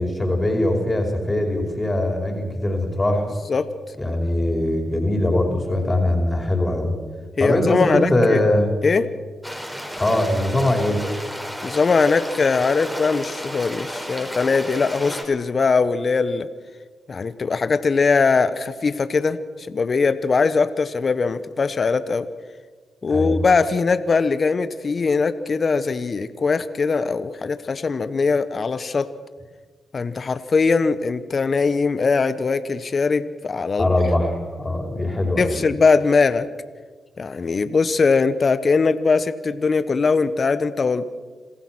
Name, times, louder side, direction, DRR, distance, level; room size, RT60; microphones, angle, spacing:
voice 1, 0.0-3.3 4.0-6.9 7.4-8.7 9.9-11.0 23.1-23.4 33.8-35.6, left 1 dB, 25° left, 2 dB, 5.1 m, -21 dB
voice 2, 7.4-8.4 8.8-9.1 11.6-16.5 17.1-22.3 23.0-29.1 29.9-33.9 35.4-36.5 37.2-41.0, left 4 dB, 50° left, 12 dB, 1.1 m, -21 dB
sound 1, 9.4-15.2, equal, 5° right, 5.2 m, -32 dB
27.0 x 15.5 x 6.2 m, 1.4 s
supercardioid pair, 50°, 0 cm